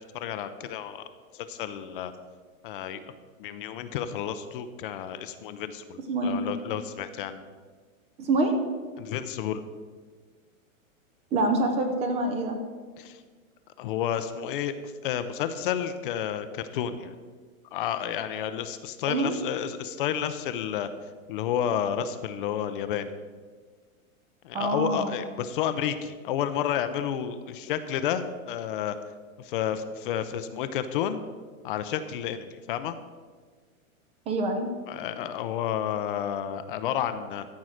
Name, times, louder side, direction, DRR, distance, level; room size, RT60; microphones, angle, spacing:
voice 1, 0.1-1.0 1.3-2.1 2.6-3.0 3.4-7.4 9.0-9.6 13.0-13.2 13.8-17.2 17.7-20.9 21.3-23.1 24.4-29.0 29.4-31.2 31.6-32.9 34.9-37.4, left 9 dB, 40° left, 10 dB, 0.5 m, -31 dB
voice 2, 6.1-6.4 8.2-8.5 11.3-12.6 19.1-19.4 24.5-25.2 34.3-34.7, right 2 dB, 15° right, 5 dB, 0.5 m, -26 dB
13.5 x 4.7 x 6.3 m, 1.5 s
hypercardioid pair, 145°, 43 cm